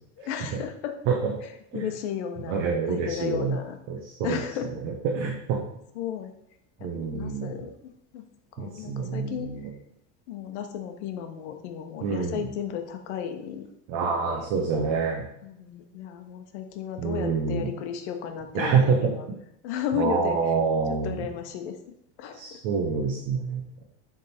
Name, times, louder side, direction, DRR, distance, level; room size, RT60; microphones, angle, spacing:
voice 1, 0.2-0.9 1.7-3.8 4.2-4.7 5.9-6.3 6.8-7.7 8.1-8.3 8.6-9.7 10.3-13.7 14.1-14.5 15.4-19.2 19.6-20.4 21.0-21.7 22.2-22.4, left 8 dB, 75° left, 6 dB, 1.0 m, -34 dB
voice 2, 2.5-3.6 3.9-4.4 4.8-5.6 6.8-7.6 8.6-9.7 12.0-12.4 13.9-15.3 17.0-17.7 18.5-19.4 19.9-21.3 22.3-23.7, right 5 dB, 45° right, 0 dB, 1.0 m, -27 dB
7.4 x 3.7 x 4.3 m, 0.79 s
cardioid pair, 170°, 35 cm